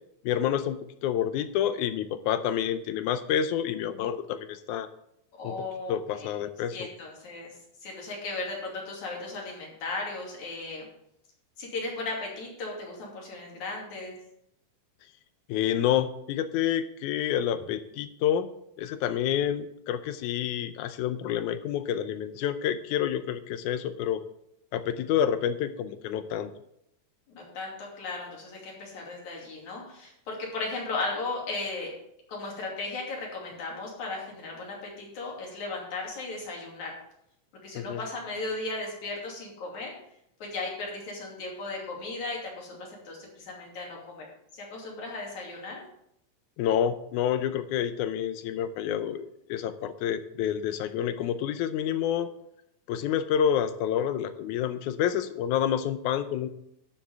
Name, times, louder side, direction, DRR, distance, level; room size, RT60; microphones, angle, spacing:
voice 1, 0.2-4.9 5.4-5.5 5.9-6.9 15.5-18.5 18.8-24.2 24.7-26.5 37.7-38.0 46.6-52.3 52.9-56.5, left 9 dB, 75° left, 11 dB, 1.9 m, -28 dB
voice 2, 5.4-6.3 6.7-7.5 7.8-10.9 11.6-14.2 27.3-31.9 32.3-37.0 37.6-39.9 40.4-44.3 44.5-45.8, left 3 dB, 60° left, -2 dB, 4.1 m, -36 dB
12.5 x 10.0 x 3.6 m, 0.76 s
omnidirectional pair, 3.8 m